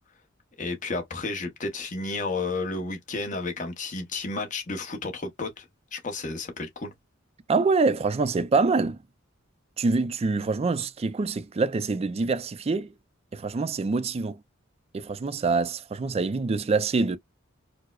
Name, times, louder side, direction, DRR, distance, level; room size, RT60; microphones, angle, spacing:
voice 1, 0.6-5.6 5.9-6.9, left 3 dB, 40° left, 0.8 m, -32 dB
voice 2, 7.5-9.0 9.8-12.9 13.3-14.4 14.9-17.2, right 4 dB, 30° right, 0.4 m, -25 dB
4.6 x 2.0 x 2.3 m
head